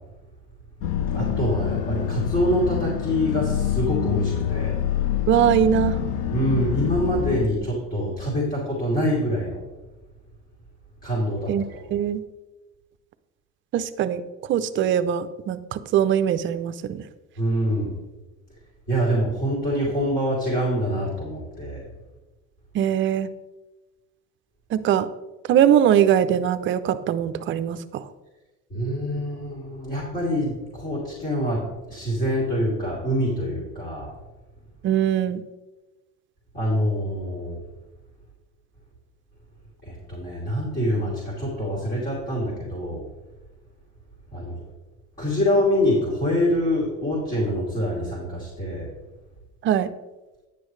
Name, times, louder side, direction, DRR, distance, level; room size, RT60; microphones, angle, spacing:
sound 1, 0.8-7.5, left 10 dB, 70° left, 0.7 m, -26 dB
voice 1, 1.1-4.8 6.3-9.7 11.0-11.9 17.4-18.0 18.9-21.9 28.7-34.1 36.5-37.6 39.8-43.0 44.3-44.6 45.2-48.9, equal, 30° left, -5 dB, 3.1 m, -25 dB
voice 2, 5.3-6.0 11.5-11.6 11.9-12.2 13.7-14.2 14.5-17.0 22.7-23.3 24.7-25.1 25.5-28.0 34.8-35.4 49.6-49.9, right 10 dB, 40° right, 11 dB, 0.5 m, -21 dB
10.5 x 8.4 x 3.2 m, 1.1 s
cardioid pair, 135°, 30 cm